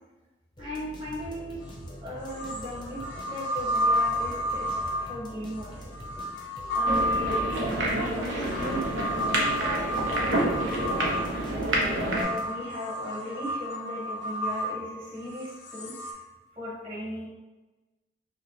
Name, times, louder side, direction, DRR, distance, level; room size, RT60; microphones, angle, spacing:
sound 1, 0.6-12.8, equal, 25° left, 0.6 m, -44 dB
voice 1, 0.6-1.6 2.0-5.9 6.7-8.8 9.2-9.8 10.1-10.8 12.0-16.3 16.5-17.2, left 1 dB, 30° right, -10 dB, 1.2 m, -37 dB
sound 2, 1.6-1.7 2.3-16.1, equal, 65° left, 0.6 m, -31 dB
sound 3, 6.8-12.2, right 1 dB, 80° right, 0.7 m, -28 dB
4.9 x 2.1 x 3.1 m, 1.2 s
head